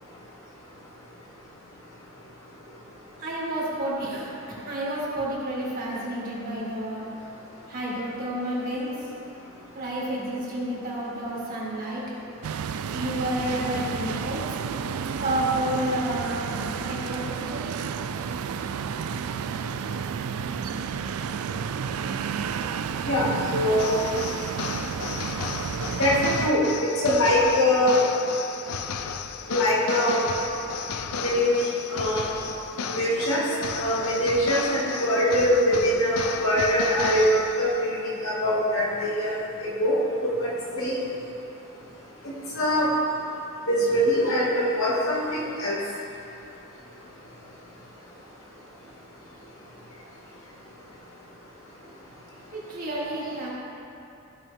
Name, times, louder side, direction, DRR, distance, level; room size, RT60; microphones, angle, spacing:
voice 1, 3.2-7.3 7.7-8.9 9.7-12.0 12.8-14.4 14.9-17.7 52.5-53.5, right 1 dB, 40° right, -6 dB, 2.2 m, -30 dB
sound 1, 12.4-26.5, right 6 dB, 80° right, 0.4 m, -31 dB
voice 2, 23.5-24.0 26.0-26.6 27.0-28.0 29.5-30.2 31.1-31.5 31.9-32.3 32.9-33.4 33.7-39.4 39.8-40.0 40.4-41.0 42.5-42.9 43.7-45.8, equal, 70° left, -6 dB, 2.1 m, -23 dB
sound 2, 23.8-37.8, left 6 dB, 85° left, 0.5 m, -34 dB
15.0 x 5.5 x 3.5 m, 2.8 s
head